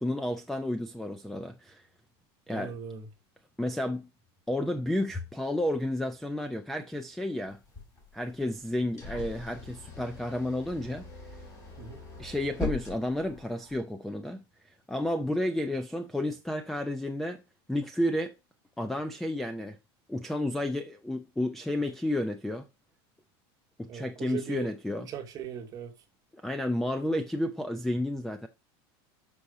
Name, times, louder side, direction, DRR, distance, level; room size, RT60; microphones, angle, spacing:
voice 1, 0.0-1.9 2.5-2.7 3.6-4.1 4.5-7.6 8.1-11.1 12.2-17.4 17.7-18.3 18.8-19.8 20.1-22.7 23.8-25.1 26.3-28.5, left 1 dB, ahead, 0.3 m, -31 dB
voice 2, 2.5-3.1 11.8-12.0 23.9-24.7 25.1-25.9, right 8 dB, 30° right, 1.0 m, -39 dB
sound 1, 7.5-13.8, left 3 dB, 25° left, 3.7 m, -41 dB
6.3 x 5.5 x 4.6 m
supercardioid pair, 170°, 13 cm